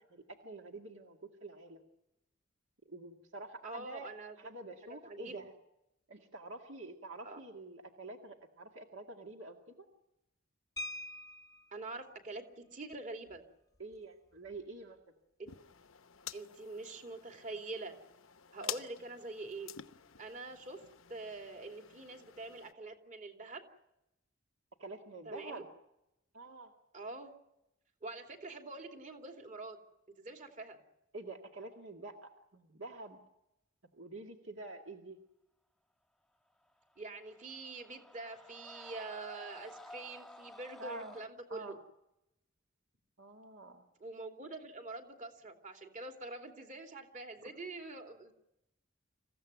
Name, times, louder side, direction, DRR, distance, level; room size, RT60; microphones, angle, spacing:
voice 1, 0.0-1.8 2.8-4.1 4.4-5.5 6.1-9.9 13.8-15.0 18.6-18.8 24.8-25.7 26.3-26.7 31.1-33.2 33.9-35.2 40.8-41.2 41.5-41.8 43.2-43.8 47.4-47.5, right 2 dB, 65° right, 2 dB, 2.2 m, -47 dB
voice 2, 3.6-4.3 5.0-5.4 7.2-7.4 11.7-13.4 15.4-15.5 16.3-18.0 18.5-19.7 20.2-20.8 21.1-23.7 25.2-25.6 26.9-27.3 28.0-29.8 30.2-30.8 37.0-41.8 44.0-48.3, right 2 dB, 40° right, 4 dB, 2.8 m, -45 dB
sound 1, 10.8-11.8 13.3-13.4 13.8-13.9 14.3-14.6, left 1 dB, 15° left, 0.8 m, -44 dB
sound 2, 15.5-22.7, left 10 dB, 80° left, 0.9 m, -49 dB
Screaming, 36.8-41.3, left 1 dB, ahead, 1.2 m, -53 dB
27.0 x 15.5 x 9.4 m, 0.90 s
head